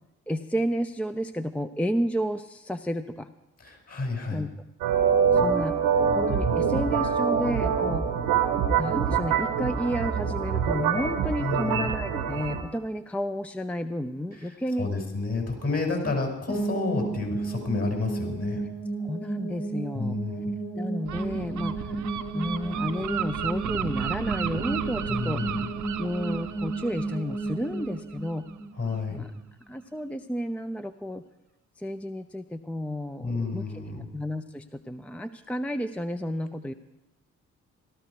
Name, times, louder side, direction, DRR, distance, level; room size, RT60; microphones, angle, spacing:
voice 1, 0.3-3.3 4.3-4.5 5.3-5.8 6.1-8.1 8.8-14.9 16.0-16.1 16.5-16.6 19.0-20.2 20.7-22.0 22.3-25.4 26.0-28.5 29.1-29.3 29.7-31.2 31.8-33.6 34.0-36.7, equal, 5° left, 9 dB, 0.6 m, -31 dB
voice 2, 3.6-4.5 11.4-11.9 14.8-18.6 19.9-20.5 25.1-25.7 28.8-29.3 33.2-34.1, left 3 dB, 45° left, 2 dB, 5.6 m, -30 dB
sound 1, 4.8-12.6, right 7 dB, 85° right, 1.3 m, -25 dB
sound 2, 16.5-29.4, right 3 dB, 80° left, 7.4 m, -33 dB
Gull seagull, 21.1-28.6, right 10 dB, 60° right, 0.7 m, -35 dB
17.5 x 13.0 x 4.8 m, 0.91 s
hypercardioid pair, 40°, 34 cm